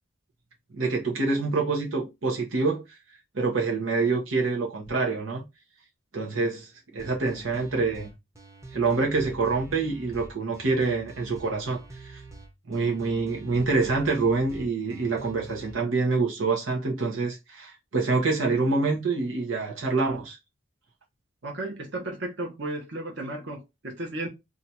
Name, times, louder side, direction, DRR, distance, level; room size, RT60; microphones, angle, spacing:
voice 1, 0.7-2.8 3.3-5.4 6.1-8.1 8.7-12.2 12.7-20.4, right 3 dB, 90° right, 1.0 m, -26 dB
sound 1, 7.0-15.7, right 2 dB, 15° right, 0.7 m, -46 dB
voice 2, 21.4-24.3, right 2 dB, 60° right, 1.2 m, -34 dB
2.8 x 2.5 x 4.2 m
head